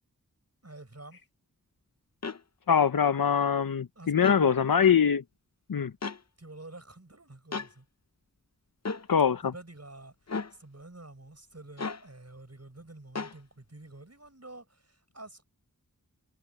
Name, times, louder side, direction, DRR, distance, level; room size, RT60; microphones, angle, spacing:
voice 1, 0.6-1.2 4.0-4.3 6.4-7.9 9.4-15.5, right 2 dB, 50° right, 7.4 m, -49 dB
sound 1, 2.2-2.4 4.2-4.4 6.0-6.2 7.5-7.7 8.8-9.1 10.3-10.5 11.8-12.0 13.2-13.4, left 4 dB, 50° left, 0.8 m, -34 dB
voice 2, 2.7-5.2 5.7-5.9 9.1-9.5, left 7 dB, 85° left, 0.7 m, -23 dB
wide cardioid pair, 50°, 34 cm